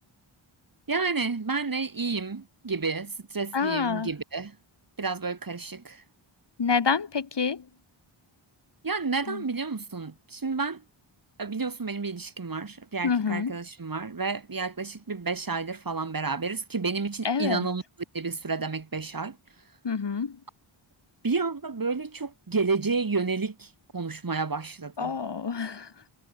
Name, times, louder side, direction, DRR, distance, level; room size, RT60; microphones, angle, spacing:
voice 1, 0.9-4.6 5.0-6.0 8.8-10.8 11.4-17.8 18.1-19.4 21.2-25.2, right 4 dB, 40° right, 3.1 m, -30 dB
voice 2, 3.5-4.1 6.6-7.7 9.3-9.4 13.0-13.5 17.2-17.7 19.8-20.4 25.0-25.9, left 5 dB, 55° left, 2.0 m, -27 dB
wide cardioid pair, 115°, 50 cm